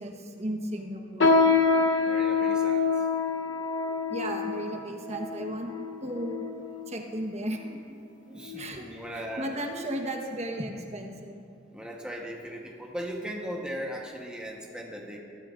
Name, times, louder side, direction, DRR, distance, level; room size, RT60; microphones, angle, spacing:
voice 1, 0.0-1.4 4.1-5.7 6.0-6.4 6.9-7.8 8.6-11.4, right 1 dB, 35° right, 2 dB, 1.1 m, -35 dB
sound 1, 1.2-6.9 7.5-7.7 8.4-8.7 9.1-9.3 10.0-10.1, left 4 dB, 70° left, 0.9 m, -26 dB
voice 2, 2.0-2.8 8.3-9.5 11.7-15.2, equal, 5° right, -2 dB, 1.1 m, -38 dB
21.5 x 13.0 x 2.5 m, 2.4 s
head